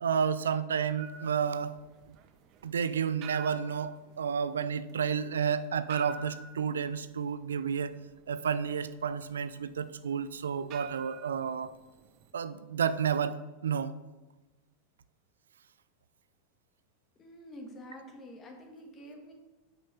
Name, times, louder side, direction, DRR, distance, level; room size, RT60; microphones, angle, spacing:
voice 1, 0.0-1.8 2.6-7.9 8.3-11.8 12.3-13.9, right 7 dB, 85° right, 15 dB, 0.3 m, -31 dB
sound 1, 1.0-12.3, right 7 dB, 45° right, 0.7 m, -49 dB
voice 2, 17.2-19.3, equal, 30° left, 3 dB, 1.6 m, -47 dB
5.6 x 5.5 x 5.6 m, 1.1 s
hypercardioid pair, 95°, 0 cm